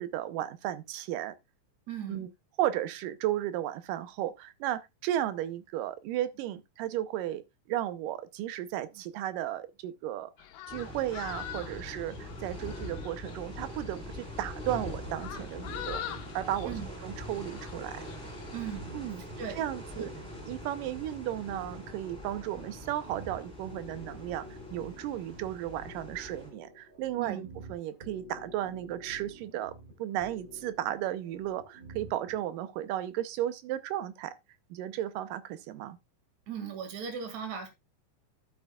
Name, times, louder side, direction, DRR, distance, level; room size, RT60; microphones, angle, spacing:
voice 1, 0.0-1.3 2.1-2.3 2.6-7.4 7.7-10.3 10.7-16.0 16.3-18.0 18.9-19.2 19.6-20.1 20.5-24.5 24.7-29.7 30.0-34.3 34.7-36.0, right 12 dB, 80° right, 2.4 m, -34 dB
voice 2, 1.9-2.2 16.6-16.9 18.5-19.0 19.4-19.6 19.9-20.0 27.2-27.4 36.5-37.7, right 7 dB, 60° right, 3.2 m, -37 dB
sound 1, 10.4-18.8, left 11 dB, 85° left, 2.6 m, -45 dB
sound 2, 10.7-26.5, left 1 dB, ahead, 4.1 m, -43 dB
sound 3, 14.9-32.4, equal, 35° right, 3.5 m, -50 dB
12.5 x 7.9 x 2.3 m
omnidirectional pair, 3.8 m